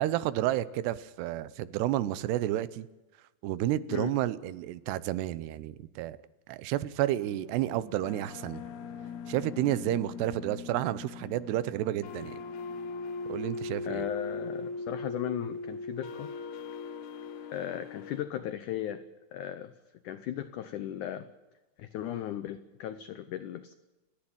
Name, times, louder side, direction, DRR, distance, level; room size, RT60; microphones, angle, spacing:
voice 1, 0.0-2.9 3.4-6.2 6.5-8.6 9.3-12.4 13.3-14.0, right 14 dB, 85° right, 16 dB, 2.9 m, -31 dB
sound 1, 7.2-18.2, left 4 dB, 65° left, 2.0 m, -40 dB
voice 2, 13.8-16.3 17.5-19.0 19.3-19.7 20.0-21.3 21.8-23.7, left 11 dB, 90° left, 12 dB, 1.7 m, -36 dB
29.0 x 10.5 x 8.9 m, 1.1 s
omnidirectional pair, 4.7 m